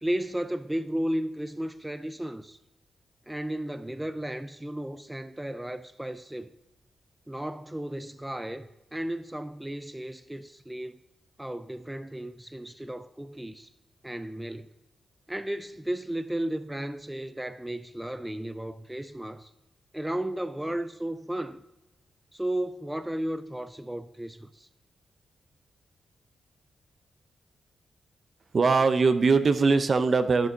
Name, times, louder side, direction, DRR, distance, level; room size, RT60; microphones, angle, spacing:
voice 1, 0.0-2.6 3.3-6.5 7.3-11.0 11.4-13.7 14.0-14.7 15.3-19.5 19.9-21.6 22.3-24.7, right 1 dB, 10° right, 0.5 m, -34 dB
voice 2, 28.5-30.5, right 4 dB, 55° right, 0.7 m, -21 dB
11.0 x 10.5 x 2.8 m
cardioid pair, 60°, 0 cm